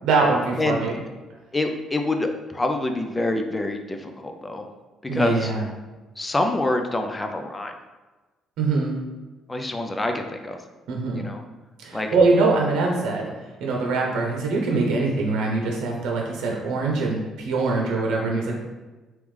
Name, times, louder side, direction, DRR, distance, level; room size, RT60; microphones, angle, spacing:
voice 1, 0.0-1.0 5.1-5.7 8.6-9.0 10.9-11.2 11.8-13.3 13.6-18.6, right 3 dB, 85° right, -1 dB, 0.7 m, -23 dB
voice 2, 1.5-4.6 5.1-5.5 6.2-7.7 9.5-10.6 11.2-11.4 11.9-12.1, left 2 dB, 15° left, 5 dB, 0.4 m, -26 dB
3.5 x 3.0 x 3.2 m, 1.2 s
cardioid pair, 145°, 0 cm